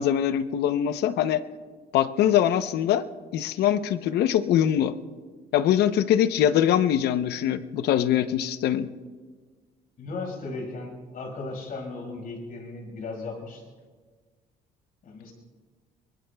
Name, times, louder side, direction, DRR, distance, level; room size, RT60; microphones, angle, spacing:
voice 1, 0.0-1.4 1.9-3.1 3.3-5.0 5.5-8.9, left 10 dB, 75° left, 12 dB, 0.8 m, -23 dB
voice 2, 10.0-13.6 15.0-15.3, left 3 dB, 55° left, 2 dB, 5.5 m, -36 dB
24.5 x 22.0 x 2.3 m, 1.5 s
cardioid pair, 110°, 17 cm